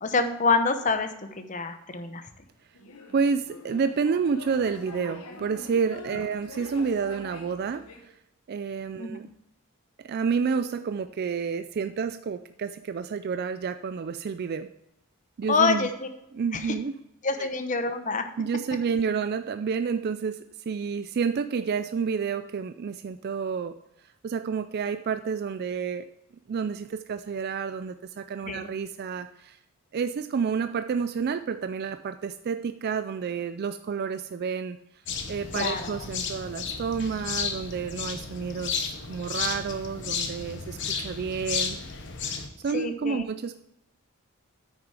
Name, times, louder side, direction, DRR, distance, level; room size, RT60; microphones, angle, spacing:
voice 1, 0.0-1.1 1.4-2.2 9.0-9.2 15.5-16.1 16.5-16.7 17.2-18.2 28.5-28.7 35.5-36.0 42.7-43.3, left 4 dB, 35° left, 8 dB, 0.8 m, -26 dB
sound 1, 2.7-8.1, left 3 dB, 85° left, 1.2 m, -44 dB
voice 2, 3.1-8.1 8.5-9.3 10.0-14.7 15.4-15.9 16.3-16.9 17.4-17.5 18.4-23.8 24.2-26.1 26.5-29.6 29.9-34.8 35.3-41.8 42.3-43.5, right 6 dB, 45° right, 10 dB, 0.3 m, -30 dB
sound 2, 35.1-42.5, left 6 dB, 55° left, 1.1 m, -33 dB
8.9 x 6.5 x 4.7 m, 0.82 s
head